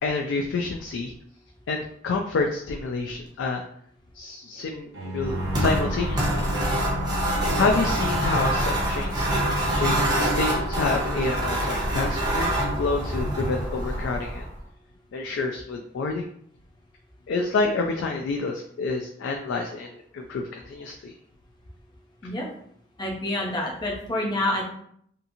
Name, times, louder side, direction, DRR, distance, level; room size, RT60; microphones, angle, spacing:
voice 1, 0.0-1.1 1.7-3.6 4.1-6.5 7.5-9.3 9.7-14.4 15.1-16.3 17.3-21.1, left 3 dB, 75° left, 2 dB, 0.3 m, -28 dB
Bowed string instrument, 4.9-9.9, equal, 55° right, 0.7 m, -36 dB
sound 1, 5.2-14.6, right 1 dB, 20° right, 0.6 m, -25 dB
voice 2, 23.0-24.6, left 1 dB, 20° left, -1 dB, 0.5 m, -27 dB
2.7 x 2.4 x 2.6 m, 0.66 s
head